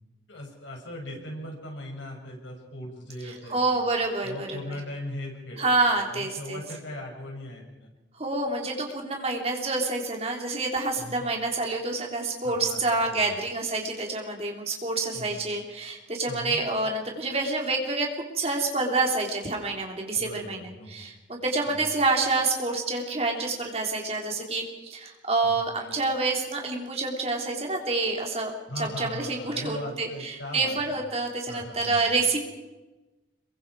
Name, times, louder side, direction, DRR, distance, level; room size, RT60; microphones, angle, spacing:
voice 1, 0.3-3.8 4.2-7.9 11.0-11.3 12.4-12.8 13.1-13.4 15.1-15.4 16.3-16.6 20.1-21.0 21.7-21.9 25.5-25.7 28.7-30.8 31.5-32.1, left 1 dB, 85° left, -1 dB, 6.8 m, -39 dB
voice 2, 3.3-4.6 5.6-6.6 8.2-18.1 18.3-20.6 20.9-32.4, right 3 dB, 35° right, 1 dB, 3.6 m, -28 dB
26.5 x 23.0 x 4.9 m, 1.1 s
head